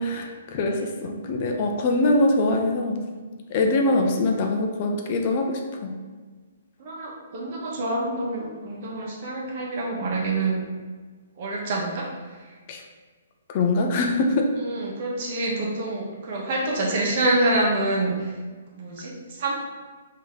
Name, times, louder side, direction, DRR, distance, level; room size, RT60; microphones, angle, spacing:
voice 1, 0.0-3.0 3.5-6.0 12.7-12.8 13.5-14.5, left 2 dB, 40° left, 3 dB, 0.5 m, -23 dB
voice 2, 6.8-10.6 11.4-12.1 12.4-12.5 14.6-18.3 18.7-19.5, right 2 dB, 50° right, -2 dB, 1.0 m, -26 dB
3.1 x 2.8 x 3.9 m, 1.4 s
figure-of-eight pair, 130°, 0 cm